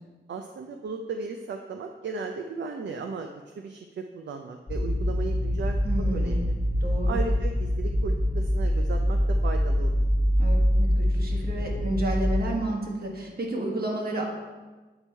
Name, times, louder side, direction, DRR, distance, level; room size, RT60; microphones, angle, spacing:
voice 1, 0.3-3.3 3.6-5.8 6.1-6.5 7.0-10.0, right 4 dB, 70° right, 4 dB, 0.5 m, -35 dB
sound 1, 4.7-12.3, equal, 30° left, 1.0 m, -24 dB
voice 2, 5.8-6.5 6.8-7.2 10.4-14.3, right 1 dB, 55° right, -1 dB, 1.5 m, -31 dB
8.6 x 4.5 x 4.4 m, 1.3 s
wide cardioid pair, 100°, 19 cm